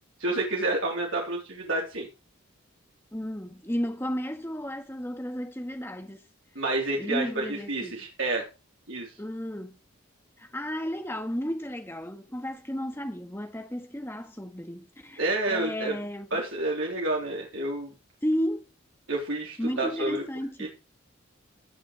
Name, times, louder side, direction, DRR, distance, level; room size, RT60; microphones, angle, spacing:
voice 1, 0.2-2.1 6.5-8.4 8.9-9.1 15.2-15.9 16.3-17.9 19.1-20.2 20.6-20.7, right 2 dB, 70° right, 3.3 m, -29 dB
voice 2, 3.1-6.2 7.0-8.0 9.2-9.8 10.4-15.2 15.5-16.3 18.2-18.7 19.6-20.7, equal, 10° left, 1.4 m, -33 dB
17.5 x 6.3 x 3.2 m
head